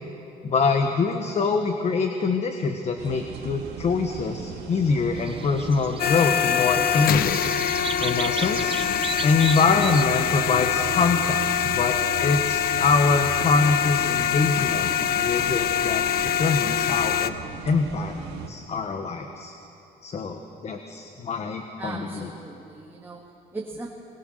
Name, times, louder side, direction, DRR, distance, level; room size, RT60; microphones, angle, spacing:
voice 1, 0.4-7.4 8.0-8.7 9.2-17.3 17.6-18.1 18.5-19.5 20.0-22.3, left 4 dB, 40° left, 5 dB, 1.4 m, -24 dB
sound 1, 3.0-18.5, right 7 dB, 75° right, 2.3 m, -38 dB
sound 2, 5.2-10.1, right 7 dB, 30° right, 0.6 m, -36 dB
sound 3, 6.0-17.3, left 10 dB, 60° left, 0.8 m, -24 dB
voice 2, 21.8-23.9, right 3 dB, 15° right, -2 dB, 2.2 m, -38 dB
21.5 x 20.5 x 6.6 m, 2.8 s
cardioid pair, 110°, 17 cm